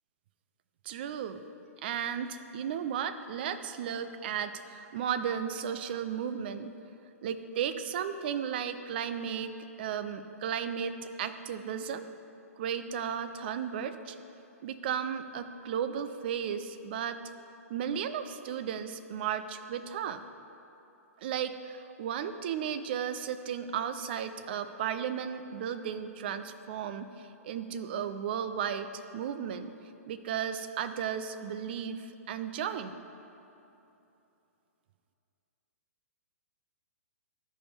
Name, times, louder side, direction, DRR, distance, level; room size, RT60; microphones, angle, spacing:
voice 1, 0.8-1.4 1.8-6.7 7.2-12.1 12.6-14.2 14.6-17.2 17.7-20.2 21.2-29.7 30.1-33.0, right 8 dB, 40° right, 10 dB, 0.4 m, -34 dB
13.0 x 5.4 x 3.2 m, 2.9 s
figure-of-eight pair, 115°, 8 cm